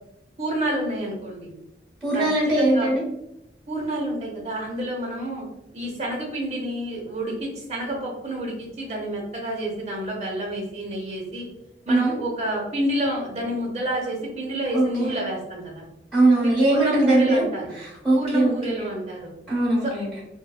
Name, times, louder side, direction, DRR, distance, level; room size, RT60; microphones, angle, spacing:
voice 1, 0.4-1.6 2.1-2.2 2.6-2.9 3.7-5.4 5.7-11.5 11.9-15.8 16.4-17.7 18.1-19.3 19.8-19.9, right 1 dB, 40° right, -1 dB, 0.8 m, -29 dB
voice 2, 2.0-3.0 11.9-12.1 14.7-15.1 16.1-17.4 17.7-18.8 19.5-20.2, right 2 dB, 5° left, -8 dB, 1.1 m, -21 dB
2.9 x 2.1 x 2.3 m, 0.82 s
head